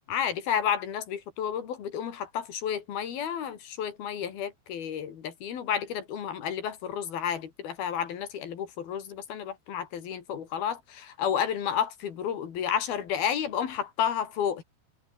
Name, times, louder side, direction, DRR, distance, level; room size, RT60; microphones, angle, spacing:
voice 1, 0.1-14.6, left 8 dB, 65° left, 4.4 m, -31 dB
omnidirectional pair, 4.7 m